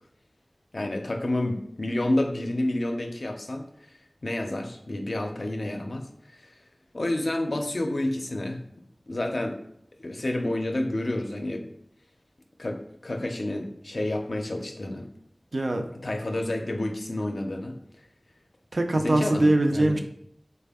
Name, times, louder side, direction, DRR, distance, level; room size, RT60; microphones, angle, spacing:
voice 1, 0.7-3.9 4.2-6.1 6.4-6.5 6.9-8.6 9.1-9.6 10.0-11.7 12.6-15.1 16.0-17.8 18.9-20.0, left 1 dB, 75° left, 4 dB, 0.4 m, -29 dB
voice 2, 15.5-15.9 18.7-20.0, right 1 dB, 75° right, 4 dB, 0.4 m, -22 dB
3.3 x 2.2 x 3.4 m, 0.70 s
wide cardioid pair, 50°, 0 cm